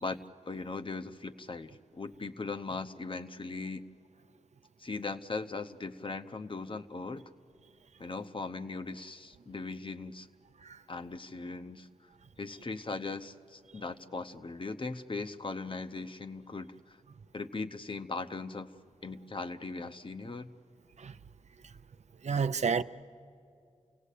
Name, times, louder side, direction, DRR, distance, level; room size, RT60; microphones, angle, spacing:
voice 1, 0.0-3.8 4.8-7.3 8.0-10.3 10.9-11.9 12.4-17.0 17.3-18.7 19.0-20.5, left 3 dB, 45° left, 0.8 m, -39 dB
voice 2, 22.2-22.8, right 5 dB, 65° right, 0.5 m, -30 dB
28.5 x 17.5 x 8.4 m
wide cardioid pair, 60°, 12 cm